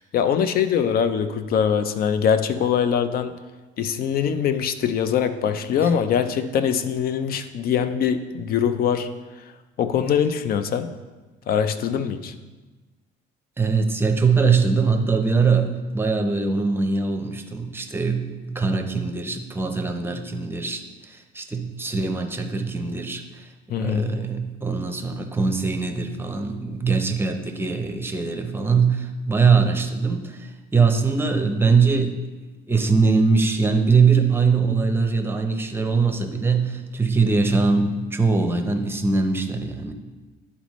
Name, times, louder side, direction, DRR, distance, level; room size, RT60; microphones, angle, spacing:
voice 1, 0.0-3.4 3.8-9.1 9.8-10.9 11.5-12.3 23.7-24.2, left 8 dB, 50° left, 10 dB, 0.5 m, -23 dB
voice 2, 13.6-20.8 21.1-23.5 23.8-32.2 32.7-39.9, right 4 dB, 10° right, 5 dB, 0.7 m, -22 dB
11.0 x 4.2 x 3.1 m, 1.2 s
cardioid pair, 110°, 19 cm